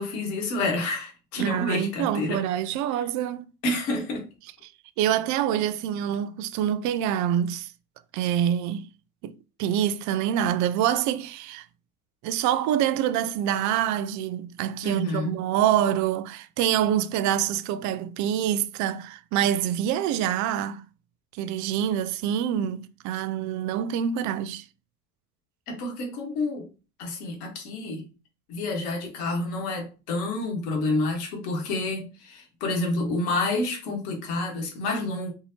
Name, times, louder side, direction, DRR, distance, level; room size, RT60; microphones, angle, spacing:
voice 1, 0.0-2.4 2.9-3.0 3.6-4.2 14.8-15.3 25.7-26.7 27.0-28.1 28.5-35.3, left 2 dB, 70° left, 1.8 m, -29 dB
voice 2, 1.4-3.5 5.0-7.7 8.1-8.9 9.2-9.3 9.6-11.7 12.2-20.8 21.3-24.6, right 10 dB, 40° right, 0.4 m, -26 dB
4.7 x 2.7 x 2.8 m
hypercardioid pair, 80°, 46 cm